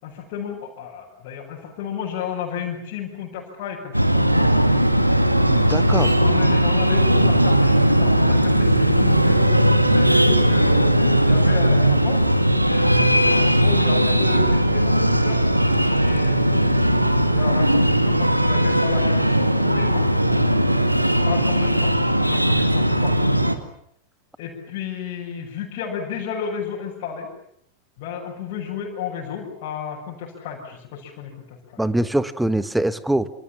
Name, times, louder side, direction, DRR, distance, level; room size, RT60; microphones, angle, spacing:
voice 1, 0.0-4.5 5.9-9.5 9.9-12.2 12.7-15.4 16.0-20.1 21.2-23.3 24.4-27.3 28.0-31.8, left 7 dB, 45° left, -4 dB, 6.8 m, -32 dB
Breathing, 3.9-23.5, right 1 dB, 90° right, 2.1 m, -18 dB
voice 2, 5.5-6.1 31.8-33.3, right 1 dB, 5° right, 14 dB, 1.6 m, -23 dB
28.5 x 27.5 x 7.3 m, 0.72 s
figure-of-eight pair, 90°, 0 cm